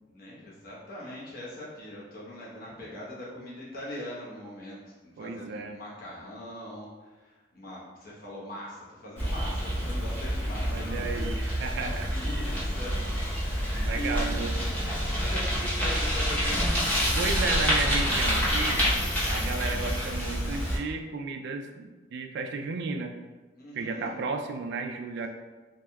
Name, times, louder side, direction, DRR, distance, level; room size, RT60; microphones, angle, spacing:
voice 1, 0.1-13.0 13.4-14.3 14.5-16.8 23.6-24.2, equal, 50° left, -6 dB, 0.9 m, -41 dB
voice 2, 5.2-5.8 10.7-12.1 13.7-14.6 17.1-18.8 19.2-23.2 23.7-25.3, right 4 dB, 65° right, 5 dB, 0.3 m, -33 dB
Bicycle, 9.2-20.8, equal, 10° left, 0.8 m, -27 dB
3.3 x 2.7 x 2.2 m, 1.2 s
head